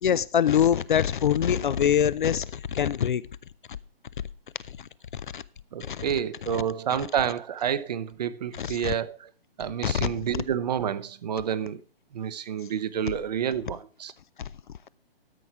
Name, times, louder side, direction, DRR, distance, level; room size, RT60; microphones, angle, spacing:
voice 1, 0.0-3.2 5.1-5.4 5.9-6.0 6.4-6.6 7.0-7.1 8.5-8.9 9.8-10.1, left 9 dB, 55° left, 0.5 m, -24 dB
voice 2, 5.7-9.2 9.6-11.8 12.1-14.1, right 8 dB, 45° right, 0.7 m, -29 dB
12.5 x 5.4 x 4.7 m
hypercardioid pair, 145°, 30 cm